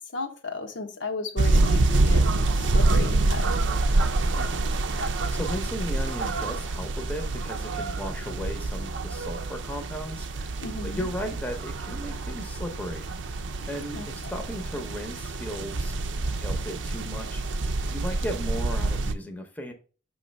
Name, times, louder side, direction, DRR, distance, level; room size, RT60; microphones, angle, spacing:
voice 1, 0.1-3.5 10.6-11.1 13.9-14.1, left 3 dB, 85° left, 1.1 m, -34 dB
sound 1, 1.4-19.1, right 2 dB, 85° right, 0.6 m, -27 dB
voice 2, 4.3-13.1 13.7-15.9 16.2-19.7, equal, 10° left, 0.7 m, -36 dB
6.3 x 3.2 x 5.1 m
head